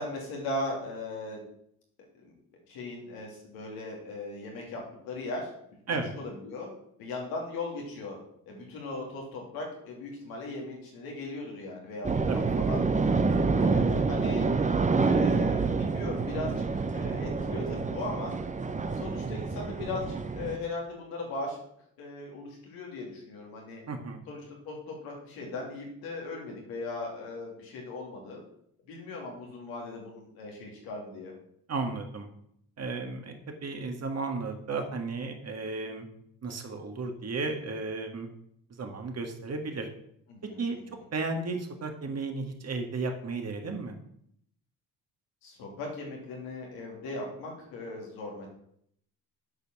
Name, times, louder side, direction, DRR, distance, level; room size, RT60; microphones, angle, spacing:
voice 1, 0.0-1.4 2.2-2.3 2.7-5.5 5.9-6.7 7.0-8.2 8.5-12.8 13.5-14.4 15.0-18.4 18.9-21.6 22.0-23.8 24.3-28.4 28.9-31.3 40.3-40.6 45.4-48.5, left 2 dB, 90° left, -1 dB, 2.7 m, -38 dB
sound 1, 12.0-20.6, right 4 dB, 20° right, 0.8 m, -27 dB
voice 2, 23.9-24.2 31.7-32.3 32.8-36.1 36.4-38.3 38.7-39.9 40.6-40.8 41.1-44.0, right 3 dB, 45° right, 4 dB, 1.8 m, -34 dB
7.8 x 5.3 x 6.0 m, 0.71 s
supercardioid pair, 75°, 35 cm